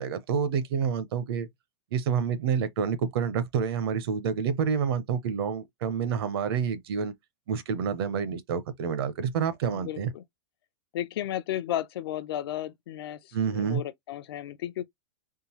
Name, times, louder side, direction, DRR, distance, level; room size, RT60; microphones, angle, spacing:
voice 1, 0.0-1.5 1.9-7.1 7.5-10.1 13.3-13.8, right 7 dB, 55° right, 0.8 m, -28 dB
voice 2, 9.7-10.2 10.9-14.8, left 12 dB, 55° left, 0.6 m, -34 dB
3.7 x 3.2 x 2.9 m
supercardioid pair, 175°, 15 cm